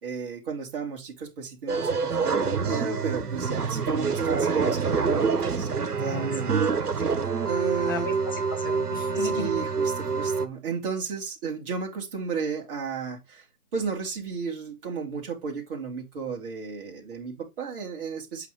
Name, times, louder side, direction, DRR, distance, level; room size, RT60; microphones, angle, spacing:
voice 1, 0.0-7.1 7.4-8.1 9.1-13.5 13.7-18.5, right 5 dB, 35° right, 2.5 m, -34 dB
sound 1, 1.7-10.5, right 5 dB, 80° right, 1.4 m, -26 dB
voice 2, 7.9-9.6, left 6 dB, 15° left, 0.6 m, -35 dB
8.2 x 2.9 x 5.0 m
hypercardioid pair, 150°, 46 cm